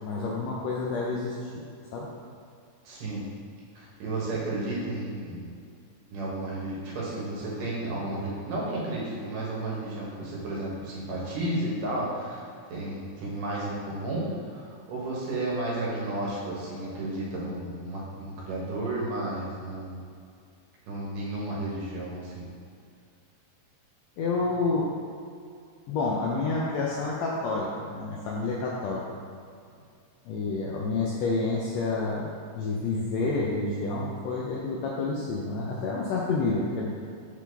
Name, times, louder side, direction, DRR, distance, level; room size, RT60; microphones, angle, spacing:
voice 1, 0.0-1.5 1.9-2.1 24.2-24.9 25.9-29.0 30.2-36.9, left 3 dB, 80° left, -4 dB, 1.5 m, -29 dB
voice 2, 2.8-3.3 3.8-5.5 6.1-12.4 12.7-20.0 20.9-22.5, right 2 dB, 90° right, -5 dB, 2.9 m, -32 dB
7.3 x 3.9 x 3.4 m, 2.3 s
omnidirectional pair, 3.6 m